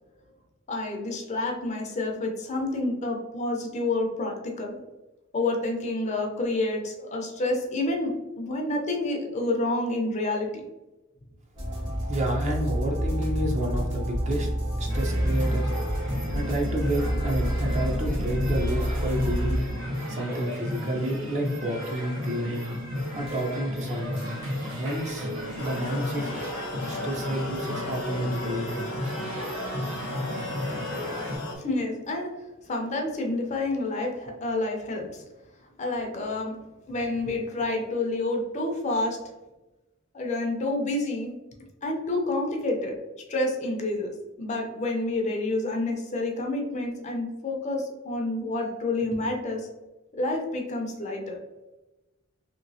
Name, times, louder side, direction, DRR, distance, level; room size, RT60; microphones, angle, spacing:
voice 1, 0.7-4.8 5.3-10.6 31.5-32.3 32.6-35.2 35.8-36.6 36.9-39.2 40.1-41.4 41.8-43.0 43.3-49.7 50.1-51.4, left 2 dB, 35° left, 2 dB, 0.5 m, -29 dB
sound 1, 11.6-19.6, equal, 60° right, 1.2 m, -28 dB
voice 2, 12.0-14.5 14.8-15.9 16.3-19.6 20.1-22.7 23.2-24.2 24.8-25.3 25.6-26.5 26.8-28.8, right 1 dB, 35° right, 0 dB, 0.6 m, -30 dB
sound 2, 14.9-31.4, equal, 85° right, 1.0 m, -34 dB
sound 3, 25.6-31.6, left 2 dB, 80° left, 0.8 m, -35 dB
3.1 x 3.0 x 2.6 m, 1.1 s
head